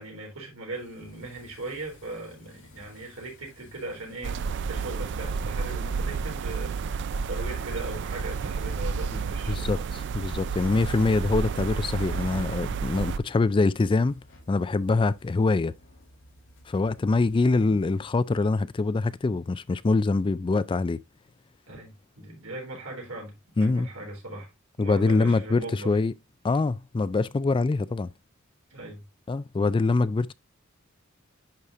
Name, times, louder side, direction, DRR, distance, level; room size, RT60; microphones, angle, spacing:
voice 1, 0.0-4.4 4.7-9.8 21.7-25.9 28.7-29.0, right 2 dB, 80° right, 3.9 m, -39 dB
sound 1, 0.7-18.1, left 1 dB, 65° left, 2.7 m, -54 dB
sound 2, 4.2-13.2, right 5 dB, 60° right, 0.4 m, -31 dB
voice 2, 9.5-14.2 14.5-15.7 16.7-21.0 23.6-23.9 24.8-26.1 26.4-28.1 29.3-30.3, left 3 dB, 25° left, 0.3 m, -24 dB
10.5 x 4.9 x 2.5 m
head